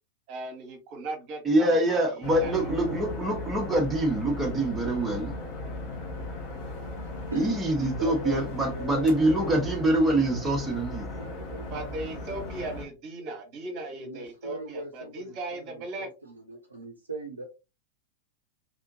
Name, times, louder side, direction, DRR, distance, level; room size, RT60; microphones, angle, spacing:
voice 1, 0.3-2.7 11.7-16.1, right 2 dB, 40° right, 1.2 m, -38 dB
voice 2, 1.4-5.3 7.4-11.1, right 1 dB, 15° right, 1.0 m, -25 dB
sound 1, 2.2-12.8, left 2 dB, 45° left, 1.4 m, -37 dB
voice 3, 6.9-7.6 8.0-8.4 8.7-9.2 9.5-9.8 10.3-11.9 14.0-17.4, right 2 dB, 80° right, 0.6 m, -39 dB
3.6 x 2.8 x 2.6 m
figure-of-eight pair, 90°, 0 cm